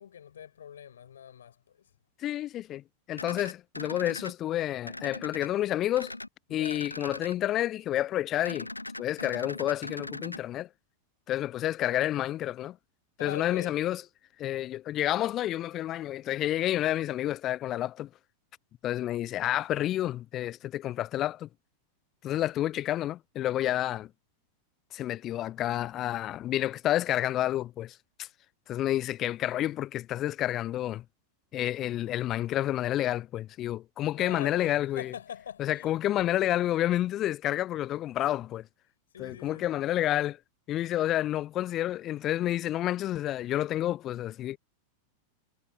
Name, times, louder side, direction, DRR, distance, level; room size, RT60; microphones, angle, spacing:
voice 1, 0.0-1.9 6.5-6.9 13.2-13.8 34.1-35.9 39.1-39.9, left 9 dB, 65° left, 6.5 m, -43 dB
voice 2, 2.2-2.8 3.1-6.1 6.5-8.7 9.0-10.7 11.3-12.8 13.2-14.0 14.4-18.1 18.8-21.5 22.2-24.1 24.9-28.3 28.7-31.0 31.5-35.1 35.6-38.7 39.2-40.4 40.7-44.6, left 13 dB, 30° left, 0.8 m, -29 dB
sound 1, 3.1-4.3 4.8-5.5 5.9-6.3 6.6-7.3 8.4-10.4, left 2 dB, 85° left, 0.3 m, -40 dB
figure-of-eight pair, 90°, 0 cm